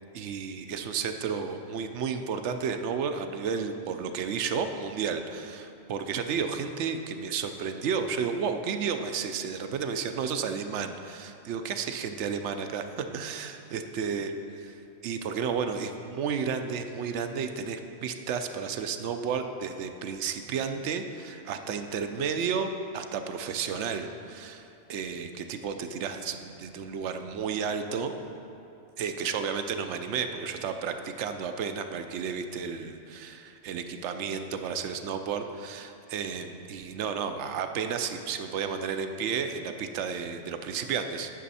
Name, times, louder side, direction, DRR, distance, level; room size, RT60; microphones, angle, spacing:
voice 1, 0.1-14.3 14.6-28.1 29.0-41.3, right 6 dB, 70° right, 7 dB, 0.8 m, -32 dB
10.0 x 6.2 x 4.1 m, 2.6 s
omnidirectional pair, 1.3 m